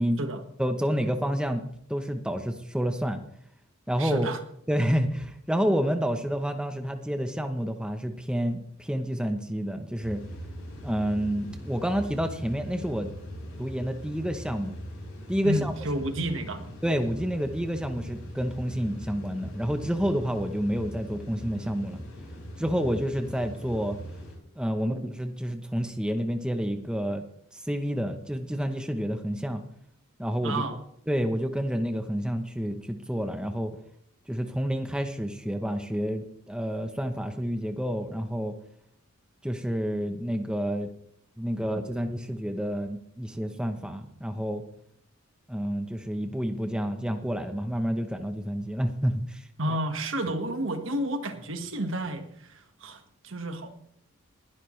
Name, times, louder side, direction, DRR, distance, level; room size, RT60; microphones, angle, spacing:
voice 1, 0.6-1.6 1.9-3.2 3.9-4.3 4.7-10.2 10.8-13.1 13.6-14.7 15.3-15.7 16.8-22.0 22.6-24.0 24.6-27.2 27.5-29.6 30.2-30.6 31.1-33.7 34.3-38.5 39.4-40.9 41.4-44.6 45.5-49.4, equal, 5° right, 6 dB, 0.8 m, -29 dB
voice 2, 4.0-4.4 15.4-16.6 30.4-30.8 49.6-53.7, right 1 dB, 65° right, 7 dB, 1.6 m, -31 dB
sound 1, 10.0-24.4, equal, 80° left, 5.6 m, -41 dB
20.5 x 11.5 x 3.2 m, 0.69 s
head